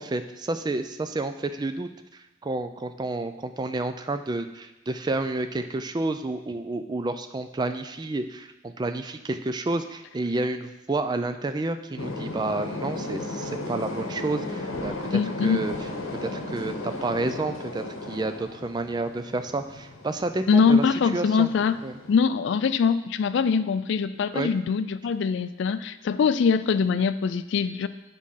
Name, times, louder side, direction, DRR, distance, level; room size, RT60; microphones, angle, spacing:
voice 1, 0.0-15.7 16.2-20.9 21.1-21.5 21.8-21.9 24.3-24.5, right 2 dB, 20° right, 8 dB, 0.3 m, -30 dB
sound 1, 12.0-22.2, left 2 dB, 85° left, 1.0 m, -35 dB
voice 2, 15.1-15.6 20.5-21.8 22.1-27.9, left 5 dB, 60° left, 13 dB, 0.3 m, -23 dB
8.5 x 3.7 x 5.6 m, 1.0 s
head